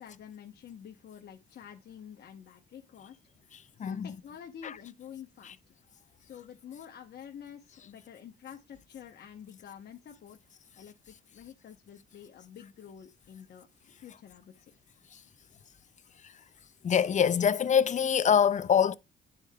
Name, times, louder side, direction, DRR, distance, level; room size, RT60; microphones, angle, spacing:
voice 1, 0.0-3.2 3.8-5.6 6.2-10.4 10.8-13.7 14.0-14.7, left 8 dB, 55° left, 0.9 m, -48 dB
voice 2, 3.5-4.2 4.6-4.8 5.4-5.5 15.1-15.2 16.2-16.3 16.8-18.9, left 8 dB, 40° left, 0.5 m, -25 dB
9.7 x 4.6 x 2.2 m
cardioid pair, 90°, 20 cm